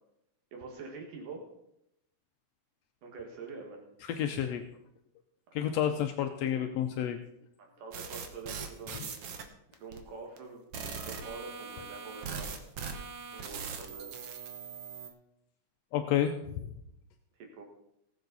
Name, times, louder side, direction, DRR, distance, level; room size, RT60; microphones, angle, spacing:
voice 1, 0.5-1.4 3.0-3.8 7.6-9.3 9.8-10.6 11.0-12.6 13.3-14.1 17.3-17.6, right 4 dB, 80° right, 1 dB, 3.4 m, -45 dB
voice 2, 4.1-4.7 5.5-7.2 15.9-16.3, left 10 dB, 80° left, 6 dB, 1.5 m, -30 dB
sound 1, 7.9-9.4 9.7-10.0 10.4-10.5 10.7-15.1, right 6 dB, 60° right, 1.7 m, -40 dB
19.0 x 7.3 x 4.0 m, 0.80 s
omnidirectional pair, 3.7 m